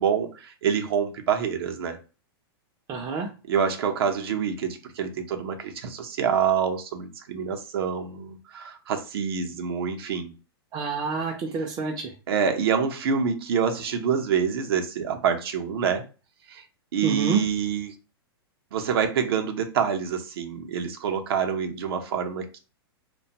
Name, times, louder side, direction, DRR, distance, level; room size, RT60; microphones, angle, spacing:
voice 1, 0.0-2.0 3.5-10.3 12.3-16.0 16.5-16.6 16.9-17.9 18.7-22.6, right 7 dB, 70° right, 6 dB, 0.6 m, -26 dB
voice 2, 2.9-3.3 10.7-12.1 17.0-17.4, right 4 dB, 30° right, 0 dB, 0.4 m, -28 dB
2.4 x 2.2 x 2.8 m, 0.34 s
hypercardioid pair, 125°, 13 cm